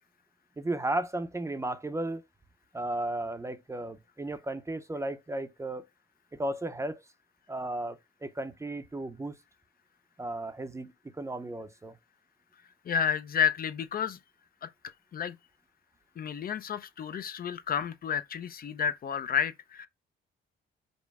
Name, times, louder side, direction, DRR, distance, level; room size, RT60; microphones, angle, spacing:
voice 1, 0.6-2.2 2.7-5.8 6.3-7.0 7.5-9.4 10.2-12.0, right 1 dB, 15° right, 0.6 m, -34 dB
voice 2, 12.9-14.2 14.6-14.7 15.1-15.4 16.2-19.9, left 7 dB, 50° left, 0.5 m, -30 dB
5.3 x 2.1 x 4.7 m
cardioid pair, 90°, 20 cm